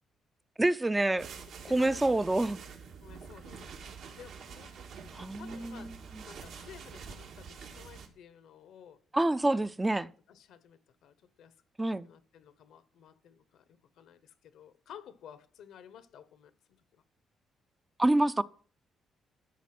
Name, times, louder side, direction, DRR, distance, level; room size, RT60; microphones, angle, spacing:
voice 1, 0.6-1.3 1.7-2.6 5.2-5.9 9.1-10.1 11.8-12.1 18.0-18.4, right 2 dB, 15° right, 0.4 m, -27 dB
sound 1, 1.2-8.1, right 6 dB, 85° right, 2.0 m, -47 dB
voice 2, 1.7-2.2 3.0-4.8 5.1-6.0 6.3-9.0 10.0-11.6 12.0-17.0, left 9 dB, 80° left, 1.0 m, -54 dB
12.5 x 5.2 x 6.0 m
cardioid pair, 115°, 0 cm